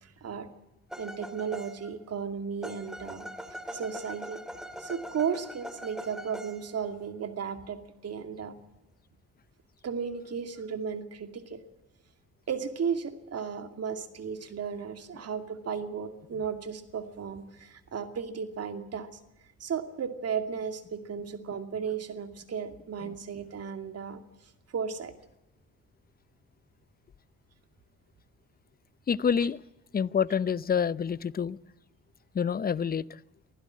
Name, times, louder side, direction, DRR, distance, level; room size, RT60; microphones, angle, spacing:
voice 1, 0.0-0.5 1.0-4.4 4.8-8.5 9.8-11.6 12.5-19.1 19.6-24.2 24.7-25.1, right 6 dB, 55° right, 2.5 m, -35 dB
Embellishments on Tar - Right most string pair, 0.9-2.0 2.6-6.8, equal, ahead, 2.1 m, -42 dB
voice 2, 29.1-29.6 29.9-31.6 32.3-33.2, left 7 dB, 30° left, 0.6 m, -27 dB
24.0 x 15.5 x 7.5 m
cardioid pair, 90°, 30 cm